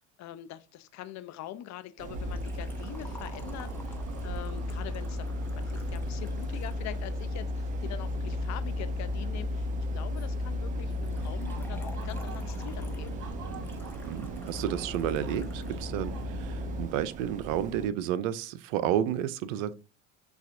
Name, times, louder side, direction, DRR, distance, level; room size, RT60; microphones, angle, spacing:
voice 1, 0.0-13.2, left 12 dB, 45° left, 0.6 m, -44 dB
sound 1, 2.0-17.9, right 6 dB, 20° right, 0.3 m, -42 dB
sound 2, 2.1-16.8, left 2 dB, 55° right, 1.4 m, -35 dB
Liquid, 2.3-7.3 11.0-15.8 16.1-16.2 17.1-17.2, left 2 dB, 5° left, 0.9 m, -53 dB
voice 2, 14.0-19.7, right 10 dB, 70° right, 0.6 m, -31 dB
6.6 x 2.4 x 2.5 m
hypercardioid pair, 85°, 40 cm